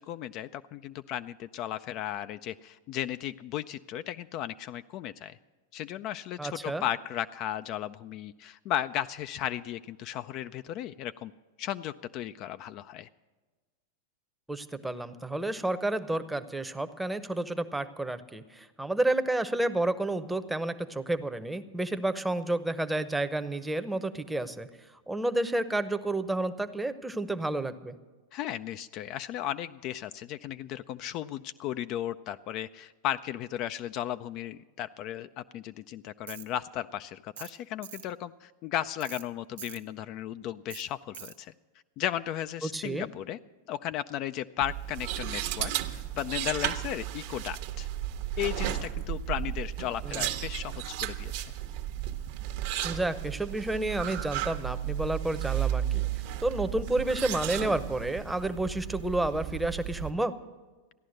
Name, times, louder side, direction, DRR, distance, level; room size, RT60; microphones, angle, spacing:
voice 1, 0.0-5.4 5.7-11.3 11.6-13.1 28.3-41.5 42.0-43.4 43.7-47.9 48.4-51.5, left 11 dB, 45° left, 12 dB, 0.3 m, -35 dB
voice 2, 6.4-6.8 14.5-24.7 25.1-28.0 42.6-43.1 50.0-50.4 52.8-56.1 56.4-60.3, right 2 dB, 5° right, 11 dB, 0.8 m, -30 dB
Tools, 36.3-36.5 37.4-37.6 37.8-38.1 39.0-39.2 39.6-39.8 40.7-40.8 41.1-41.4, right 9 dB, 80° right, 0.9 m, -43 dB
sound 1, 44.6-60.1, right 12 dB, 60° right, 1.0 m, -34 dB
14.5 x 10.5 x 6.5 m, 1.3 s
hypercardioid pair, 105°, 0 cm